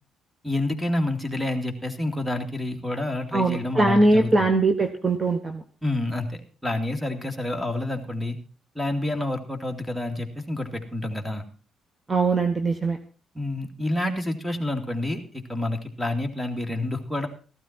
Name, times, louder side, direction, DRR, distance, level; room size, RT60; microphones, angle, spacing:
voice 1, 0.4-4.5 5.8-8.4 8.8-11.4 13.3-17.3, left 1 dB, ahead, 7 dB, 2.6 m, -28 dB
voice 2, 3.3-5.6 12.1-13.0, right 2 dB, 25° right, 7 dB, 1.3 m, -21 dB
14.5 x 12.5 x 4.5 m, 0.38 s
cardioid pair, 90°, 0 cm